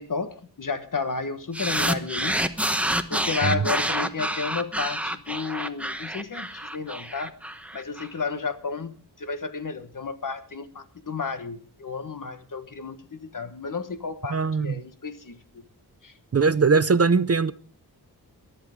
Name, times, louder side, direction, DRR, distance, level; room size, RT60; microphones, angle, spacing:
voice 1, 0.0-2.4 3.1-7.3 7.7-15.4 16.0-16.1, left 4 dB, 50° left, 1.4 m, -32 dB
sound 1, 1.5-8.1, right 1 dB, 5° right, 1.0 m, -28 dB
voice 2, 14.3-14.8 16.3-17.5, right 4 dB, 40° right, 0.6 m, -21 dB
22.5 x 12.0 x 3.6 m
wide cardioid pair, 115°, 40 cm